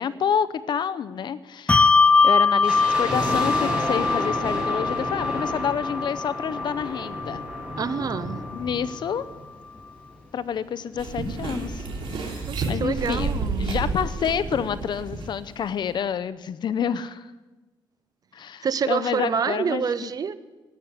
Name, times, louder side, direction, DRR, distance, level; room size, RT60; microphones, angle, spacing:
voice 1, 0.0-2.0 2.2-7.5 8.5-9.2 10.3-13.3 13.6-17.3 18.3-20.1, left 8 dB, 60° left, 15 dB, 0.7 m, -28 dB
Bell, 1.7-8.5, left 4 dB, 15° left, 0.4 m, -22 dB
sound 1, 2.6-9.9 10.1-10.2 10.9-12.7 13.0-13.1 13.3-13.6 14.1-14.2, equal, 10° right, 6.2 m, -32 dB
voice 2, 7.8-8.4 12.5-13.8 18.6-20.3, right 6 dB, 45° right, 14 dB, 0.8 m, -27 dB
sound 2, 11.0-15.5 15.8-15.9, right 3 dB, 85° right, 3.5 m, -30 dB
15.5 x 8.6 x 9.7 m, 1.2 s
cardioid pair, 120°, 9 cm